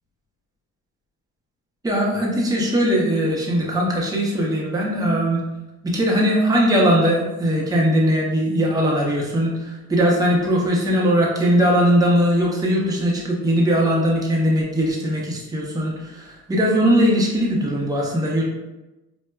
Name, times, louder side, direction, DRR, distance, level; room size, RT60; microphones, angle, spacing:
voice 1, 1.8-5.4 5.8-18.5, equal, 10° right, -3 dB, 0.6 m, -20 dB
4.5 x 2.0 x 2.2 m, 1.0 s
cardioid pair, 90°, 30 cm